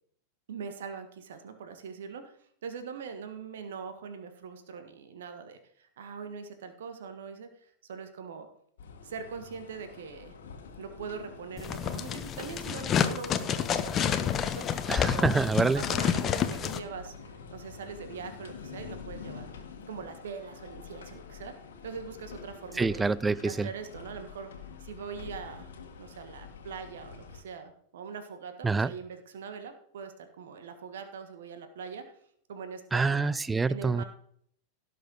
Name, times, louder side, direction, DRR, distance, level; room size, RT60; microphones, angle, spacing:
voice 1, 0.5-8.5 9.0-10.4 10.8-15.3 15.8-19.5 19.9-21.6 21.8-23.1 23.4-24.5 24.8-25.7 26.0-32.1 32.5-33.3 33.7-34.0, right 6 dB, 60° right, 1.5 m, -42 dB
sound 1, 8.8-27.4, left 6 dB, 60° left, 1.5 m, -47 dB
sound 2, 11.6-16.8, left 8 dB, 25° left, 0.9 m, -29 dB
voice 2, 14.9-15.8 22.8-23.7 28.6-28.9 32.9-34.0, right 4 dB, 10° right, 0.4 m, -26 dB
17.0 x 6.7 x 3.9 m
figure-of-eight pair, 90°, 0 cm